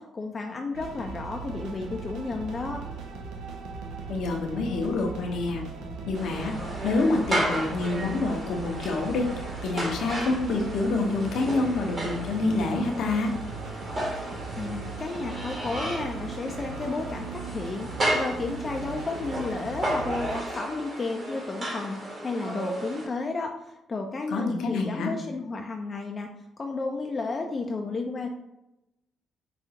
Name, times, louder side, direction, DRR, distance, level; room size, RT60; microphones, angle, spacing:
voice 1, 0.0-2.8 14.6-22.0 22.2-23.5 23.9-26.3 26.6-28.3, left 3 dB, 35° left, 3 dB, 0.4 m, -32 dB
sound 1, 0.7-20.4, right 4 dB, 90° right, 0.5 m, -38 dB
voice 2, 4.1-5.6 6.1-6.6 6.8-9.3 9.6-13.3 24.3-25.1, left 3 dB, 75° left, 2 dB, 0.7 m, -27 dB
sound 2, 6.1-23.1, right 1 dB, 40° right, 1.2 m, -34 dB
5.0 x 2.3 x 2.7 m, 0.92 s
cardioid pair, 90°, 0 cm